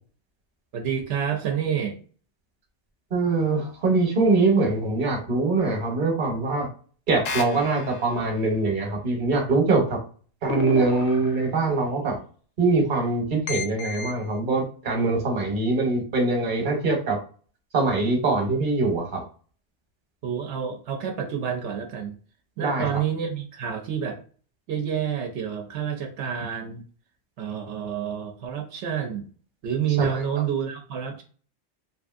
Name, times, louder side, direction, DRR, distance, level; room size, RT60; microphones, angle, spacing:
voice 1, 0.7-2.0 20.2-22.1 22.6-24.2 24.7-26.8 27.4-29.3 29.6-31.2, right 8 dB, 85° right, 3 dB, 0.9 m, -28 dB
voice 2, 3.1-6.7 7.1-10.0 10.4-12.2 12.6-17.2 17.7-19.2 22.6-22.9 30.0-30.2, right 3 dB, 50° right, 2 dB, 1.0 m, -23 dB
sound 1, 7.3-8.3 10.5-11.6 13.5-14.2, left 2 dB, 60° left, 0.6 m, -32 dB
3.0 x 2.6 x 2.4 m, 0.41 s
omnidirectional pair, 1.2 m